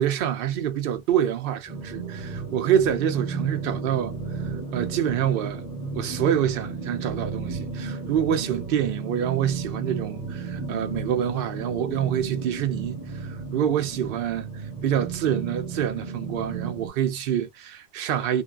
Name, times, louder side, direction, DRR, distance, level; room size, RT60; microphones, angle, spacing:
voice 1, 0.0-4.2 4.4-5.7 5.9-14.5 14.8-18.4, right 9 dB, 65° right, 0.7 m, -26 dB
sound 1, 1.7-16.9, right 4 dB, 15° right, 1.2 m, -34 dB
2.6 x 2.1 x 2.3 m
omnidirectional pair, 1.1 m